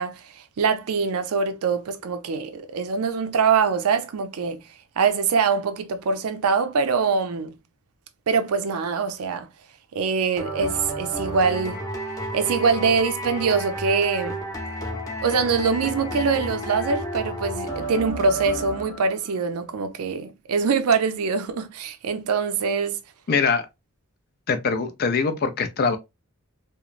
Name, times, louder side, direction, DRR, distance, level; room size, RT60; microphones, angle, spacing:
voice 1, 0.0-4.6 5.0-7.5 8.3-9.5 9.9-11.8 12.3-14.4 15.2-23.0, right 5 dB, 80° right, 0.5 m, -23 dB
sound 1, 10.4-19.3, right 1 dB, 15° left, 0.7 m, -31 dB
voice 2, 23.3-23.7 24.5-26.0, left 5 dB, 45° left, 0.4 m, -23 dB
3.0 x 2.0 x 2.4 m
head